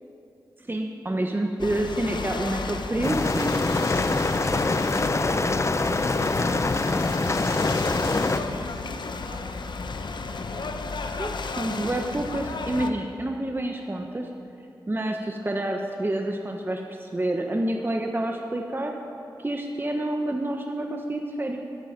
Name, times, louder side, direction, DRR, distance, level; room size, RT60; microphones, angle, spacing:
voice 1, 0.6-3.5 11.1-14.3 14.9-18.9 19.4-21.6, right 1 dB, 25° right, 2 dB, 1.2 m, -28 dB
Ocean / Boat Water vehicle, 1.6-12.9, left 4 dB, 70° left, 0.8 m, -33 dB
sound 1, 3.0-8.4, left 3 dB, 35° left, 0.7 m, -24 dB
voice 2, 5.2-6.6 7.4-9.5 10.5-10.7, right 1 dB, 70° right, -1 dB, 2.6 m, -42 dB
14.5 x 13.0 x 5.3 m, 2.7 s
cardioid pair, 50°, 8 cm